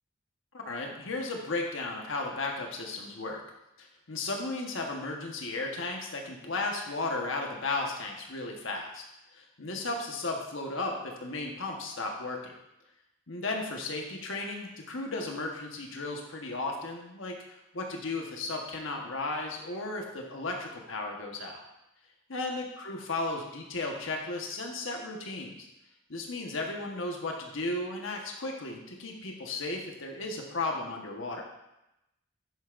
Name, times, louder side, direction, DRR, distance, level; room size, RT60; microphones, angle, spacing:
voice 1, 0.5-3.4 3.8-9.0 9.3-12.5 13.3-21.6 22.3-25.7 26.1-31.4, left 2 dB, 85° left, 1 dB, 1.3 m, -35 dB
10.5 x 7.8 x 2.6 m, 0.90 s
head